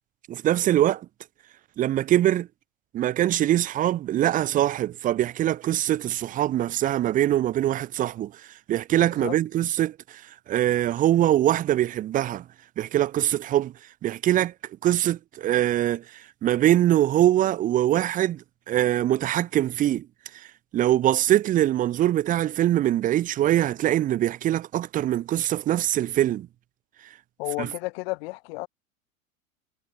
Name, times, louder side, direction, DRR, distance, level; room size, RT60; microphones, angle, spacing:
voice 1, 0.3-1.1 1.8-2.5 2.9-12.5 12.8-13.7 14.0-14.5 14.8-20.1 20.3-20.5 20.7-26.5 27.6-27.7, right 13 dB, 20° right, 0.8 m, -23 dB
voice 2, 9.0-9.4 27.4-28.7, left 25 dB, 45° left, 2.1 m, -32 dB
figure-of-eight pair, 90°, 41 cm